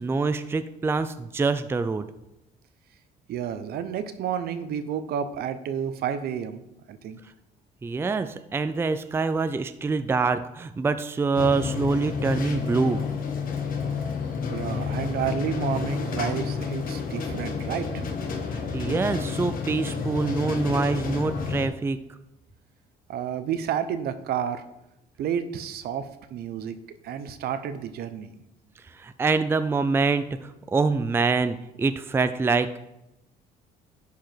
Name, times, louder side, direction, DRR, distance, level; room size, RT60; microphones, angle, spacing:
voice 1, 0.0-2.1 7.8-13.0 18.5-22.0 29.0-32.8, right 4 dB, 15° right, 11 dB, 0.4 m, -25 dB
voice 2, 3.3-6.6 6.9-7.2 14.5-18.1 23.1-24.6 25.2-26.8 27.0-28.3, right 8 dB, 65° right, 11 dB, 0.8 m, -30 dB
sound 1, 11.3-21.7, left 5 dB, 55° left, 1.3 m, -30 dB
10.5 x 4.9 x 4.5 m, 0.89 s
cardioid pair, 110°, 17 cm